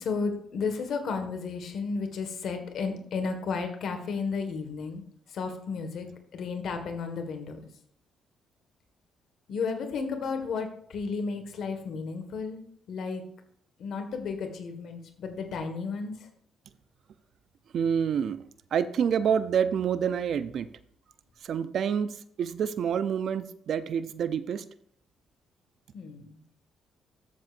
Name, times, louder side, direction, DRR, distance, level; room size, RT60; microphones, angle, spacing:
voice 1, 0.0-5.0 5.3-6.1 6.3-7.6 9.5-12.6 12.9-13.2 13.8-16.3 25.9-26.4, left 5 dB, 70° left, 6 dB, 1.6 m, -33 dB
voice 2, 17.7-18.4 18.7-20.7 21.4-22.1 22.4-24.6, right 7 dB, 65° right, 13 dB, 0.5 m, -27 dB
13.5 x 7.4 x 2.6 m, 0.63 s
cardioid pair, 90°, 0 cm